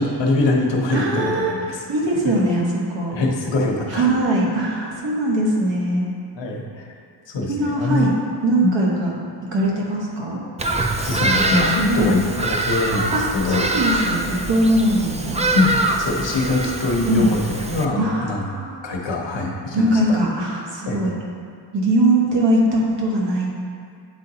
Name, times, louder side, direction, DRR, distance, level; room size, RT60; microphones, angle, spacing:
voice 1, 0.0-1.8 3.1-4.0 6.3-6.9 7.3-8.1 8.6-8.7 10.7-10.8 11.0-13.6 15.5-17.4 17.7-18.4 18.8-20.2 20.9-21.0, left 2 dB, 80° left, 0 dB, 1.0 m, -23 dB
voice 2, 0.9-1.5 1.9-3.2 3.9-6.1 7.5-8.1 8.4-9.1 9.4-10.4 11.9-12.1 13.1-13.2 13.5-15.4 17.1-17.3 18.0-18.8 19.7-21.1 21.7-23.5, right 1 dB, 80° right, -3 dB, 1.3 m, -21 dB
Bird vocalization bird call bird song, 10.6-17.9, right 2 dB, 15° right, 0.3 m, -24 dB
8.8 x 3.8 x 2.8 m, 2.3 s
wide cardioid pair, 90°, 43 cm